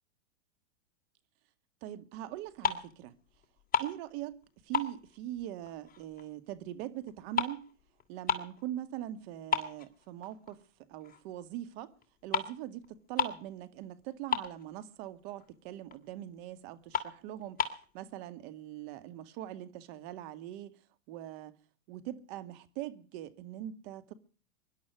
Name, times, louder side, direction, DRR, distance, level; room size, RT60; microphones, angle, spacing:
voice 1, 1.8-3.1 3.8-4.4 4.6-7.6 8.1-10.6 10.9-11.9 12.2-12.8 13.1-20.7 21.1-21.5 21.9-24.1, right 13 dB, 45° right, 2.2 m, -42 dB
sound 1, 2.3-3.0 3.3-4.4 4.7-6.2 6.6-8.6 9.0-9.1 9.5-10.6 11.0-11.2 12.0-12.1 12.3-12.6 12.8-12.9 13.1-13.5 13.8-13.9 14.1-14.9 15.4-15.5 15.9-16.0 16.4-16.5 16.9-17.9, left 6 dB, 20° left, 2.6 m, -33 dB
24.0 x 11.5 x 4.8 m
hypercardioid pair, 125°, 40 cm